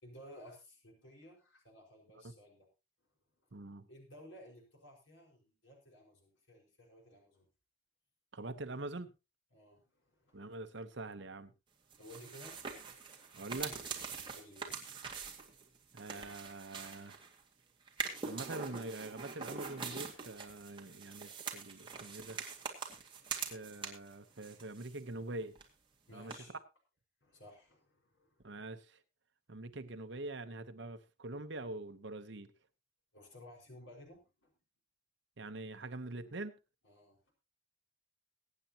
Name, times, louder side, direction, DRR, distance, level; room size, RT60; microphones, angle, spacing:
voice 1, 0.0-2.7 3.9-7.5 9.5-10.6 12.0-13.4 14.3-15.6 26.1-26.5 27.2-28.4 33.1-34.5 36.8-37.3, left 1 dB, 70° left, 0 dB, 5.0 m, -57 dB
voice 2, 3.5-3.9 8.3-9.1 10.3-11.5 13.3-14.1 15.9-17.2 18.2-22.4 23.5-25.5 26.1-26.6 28.4-29.0 29.5-32.5 35.4-36.6, right 2 dB, 60° right, 10 dB, 1.0 m, -44 dB
sound 1, 11.9-17.4 17.9-24.1 24.4-25.3 25.5-25.6 26.3-26.4, right 5 dB, 25° right, 2.1 m, -44 dB
22.5 x 9.2 x 2.9 m, 0.28 s
head